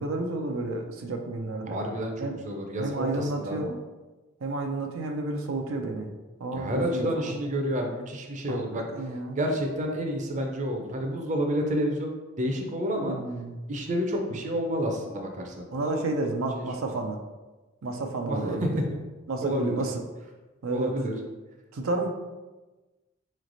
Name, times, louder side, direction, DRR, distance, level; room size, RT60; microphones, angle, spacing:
voice 1, 0.0-1.8 2.2-2.3 2.8-3.8 4.4-6.1 6.4-7.3 8.5-9.4 13.0-13.5 15.7-17.2 17.8-18.8 19.3-20.0 20.6-20.9 21.7-22.1, right 2 dB, 85° right, 3 dB, 0.5 m, -31 dB
voice 2, 1.7-3.6 6.5-8.8 9.3-13.1 13.7-16.0 16.6-16.7 18.2-18.7 19.4-19.8 20.7-21.1, equal, 40° right, 2 dB, 0.6 m, -29 dB
4.1 x 3.2 x 3.9 m, 1.2 s
head